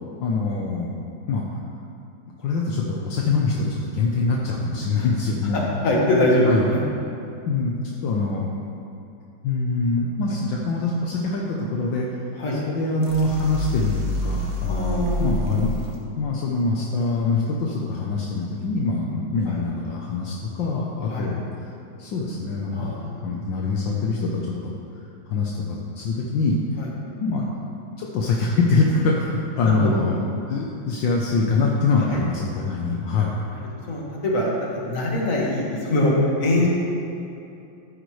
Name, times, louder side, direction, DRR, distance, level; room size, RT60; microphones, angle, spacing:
voice 1, 0.2-0.9 1.3-1.4 2.4-5.7 6.5-6.7 7.5-8.5 9.4-12.1 12.6-15.7 16.2-21.4 22.0-22.9 23.2-24.7 25.3-26.6 27.2-27.4 28.0-30.2 30.5-33.4, left 3 dB, 70° left, -2 dB, 1.6 m, -24 dB
voice 2, 5.5-6.9 12.4-12.6 14.6-15.5 19.5-19.6 21.1-21.3 22.7-23.3 26.8-26.9 27.4-27.5 29.6-29.9 32.1-32.2 33.5-36.7, left 1 dB, 45° left, -4 dB, 2.1 m, -23 dB
sound 1, 13.0-16.0, left 1 dB, 60° right, 1.8 m, -28 dB
13.5 x 10.0 x 3.2 m, 2.7 s
omnidirectional pair, 2.1 m